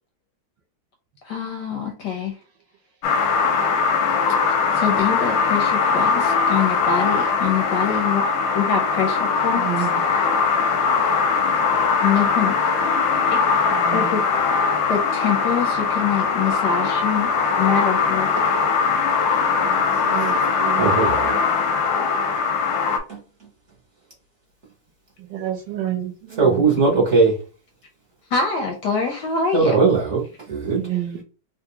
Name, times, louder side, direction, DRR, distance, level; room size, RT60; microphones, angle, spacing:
voice 1, 1.2-2.4 4.5-9.9 12.0-12.6 13.9-14.2 14.9-17.3 17.6-18.3 28.3-29.7, left 6 dB, 70° left, 1.1 m, -24 dB
sound 1, 3.0-23.0, left 5 dB, 90° left, 1.5 m, -21 dB
voice 2, 9.6-10.0 13.7-14.2 19.6-21.4 25.2-26.8 30.8-31.2, right 11 dB, 70° right, 1.2 m, -30 dB
voice 3, 20.6-21.3 23.1-23.2 26.4-27.4 29.5-30.8, right 4 dB, 45° right, 0.9 m, -19 dB
3.5 x 2.5 x 2.8 m
omnidirectional pair, 2.3 m